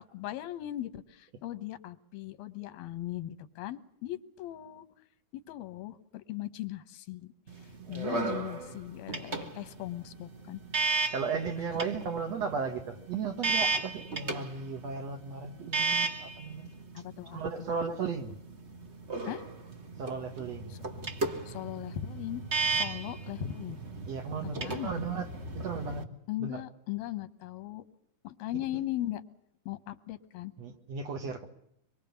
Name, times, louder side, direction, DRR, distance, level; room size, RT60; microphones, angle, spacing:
voice 1, 0.0-4.9 5.3-10.6 16.9-17.7 19.3-19.4 20.7-20.8 21.5-22.4 22.7-23.8 24.4-25.0 26.3-27.9 28.2-29.2 29.7-30.5, left 14 dB, 90° left, 3.0 m, -39 dB
sound 1, 7.5-26.0, right 3 dB, 35° right, 1.0 m, -35 dB
voice 2, 7.8-8.8 11.1-16.7 17.3-18.4 20.0-20.8 24.0-25.3 25.5-26.0 26.4-26.6 30.6-31.5, right 5 dB, 50° right, 2.8 m, -35 dB
25.0 x 23.0 x 7.1 m
omnidirectional pair, 4.1 m